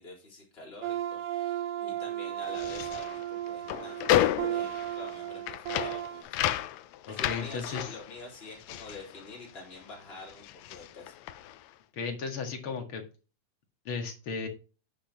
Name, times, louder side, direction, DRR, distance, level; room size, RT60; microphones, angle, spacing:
voice 1, 0.0-6.4 7.0-11.1, left 2 dB, 20° left, -2 dB, 3.9 m, -47 dB
sound 1, 0.8-6.2, right 12 dB, 80° right, 2.5 m, -35 dB
sound 2, 2.4-9.9 10.2-11.7, left 13 dB, 75° left, 1.6 m, -32 dB
voice 2, 7.1-7.9 11.9-13.0 13.9-14.5, left 5 dB, 45° left, 4 dB, 2.4 m, -35 dB
9.9 x 7.9 x 3.0 m, 0.33 s
omnidirectional pair, 3.6 m